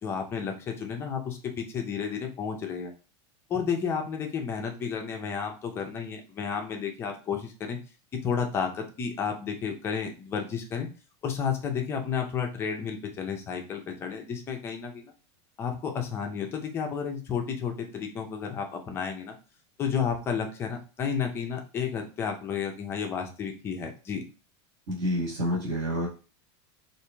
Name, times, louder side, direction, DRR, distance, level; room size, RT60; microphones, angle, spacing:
voice 1, 0.0-2.9 3.5-7.8 8.1-10.9 11.2-15.1 15.6-19.4 19.8-24.2, left 6 dB, 15° left, 3 dB, 0.5 m, -32 dB
voice 2, 24.9-26.1, equal, 40° right, -5 dB, 1.4 m, -28 dB
4.7 x 2.5 x 3.3 m, 0.34 s
supercardioid pair, 180°, 15 cm